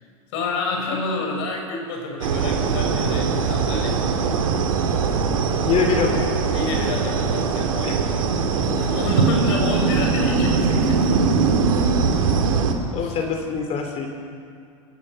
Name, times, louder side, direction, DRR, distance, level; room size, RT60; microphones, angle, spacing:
voice 1, 0.3-4.1 6.5-8.0 8.5-11.2 13.0-13.1, left 3 dB, 55° left, 1 dB, 6.4 m, -29 dB
sound 1, 2.2-12.7, right 5 dB, 70° right, 2.6 m, -21 dB
voice 2, 5.7-6.2 7.8-8.0 12.9-14.1, left 6 dB, 35° left, 4 dB, 3.0 m, -23 dB
26.5 x 17.0 x 6.6 m, 2.3 s
figure-of-eight pair, 90°, 18 cm